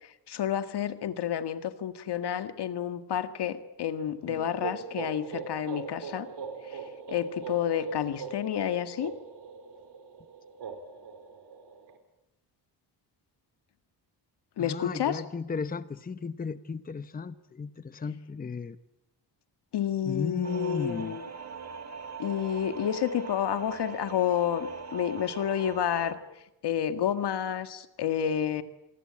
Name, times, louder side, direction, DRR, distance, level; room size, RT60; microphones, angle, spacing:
voice 1, 0.3-6.3 6.7-6.8 7.1-9.1 14.6-15.2 19.7-21.2 22.2-26.2 26.6-28.6, left 9 dB, 70° left, 10 dB, 1.9 m, -30 dB
sound 1, 4.2-12.0, right 5 dB, 75° right, 4.0 m, -41 dB
voice 2, 14.6-18.8 20.0-21.2, left 5 dB, 20° left, 13 dB, 0.9 m, -35 dB
sound 2, 20.4-26.1, right 5 dB, 40° right, 2.9 m, -41 dB
26.5 x 20.5 x 8.7 m, 0.87 s
cardioid pair, 125°, 41 cm